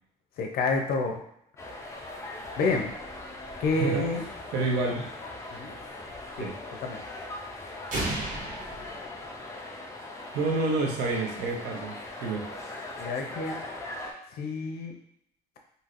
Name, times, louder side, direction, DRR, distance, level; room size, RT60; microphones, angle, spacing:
voice 1, 0.4-1.2 2.6-2.9 3.6-4.3 5.5-5.7 6.4-6.5 6.8-7.0 13.0-13.6 14.3-14.9, left 3 dB, 65° left, 2 dB, 0.6 m, -28 dB
sound 1, 1.6-14.1, left 2 dB, 15° left, 0.5 m, -40 dB
voice 2, 3.7-4.2 4.5-5.1 6.3-6.5 10.3-12.5, right 3 dB, 80° right, 0 dB, 0.8 m, -29 dB
sound 2, 7.9-9.8, right 2 dB, 50° right, 1.2 m, -34 dB
3.1 x 2.7 x 2.5 m, 0.73 s
cardioid pair, 110°, 17 cm